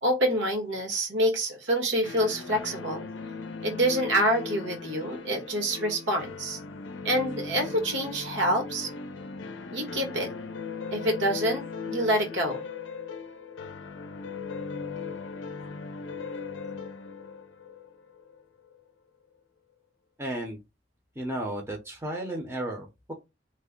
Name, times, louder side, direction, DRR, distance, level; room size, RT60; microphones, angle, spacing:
voice 1, 0.0-3.1 3.6-6.6 7.0-8.9 9.7-10.3 10.9-12.6, equal, 80° right, 1.4 m, -27 dB
sound 1, 2.0-18.8, left 4 dB, 80° left, 0.5 m, -38 dB
voice 2, 20.2-20.6 21.2-23.1, right 1 dB, 15° right, 0.6 m, -33 dB
3.3 x 2.1 x 3.7 m
head